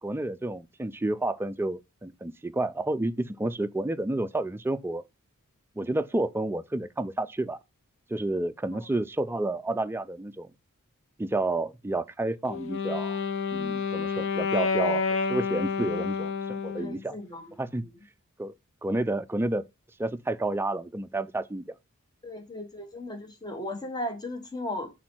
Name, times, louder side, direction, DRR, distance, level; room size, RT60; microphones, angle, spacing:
voice 1, 0.0-5.0 5.8-7.6 8.1-10.5 11.2-13.2 13.5-17.2 17.6-17.8 18.4-18.5 18.8-19.6 20.0-21.6, right 2 dB, 10° right, 0.4 m, -30 dB
Wind instrument woodwind instrument, 12.5-17.0, left 5 dB, 65° left, 0.6 m, -29 dB
voice 2, 16.8-17.5 17.8-17.9 22.2-24.9, left 1 dB, 20° left, 1.3 m, -36 dB
6.0 x 4.2 x 4.4 m
head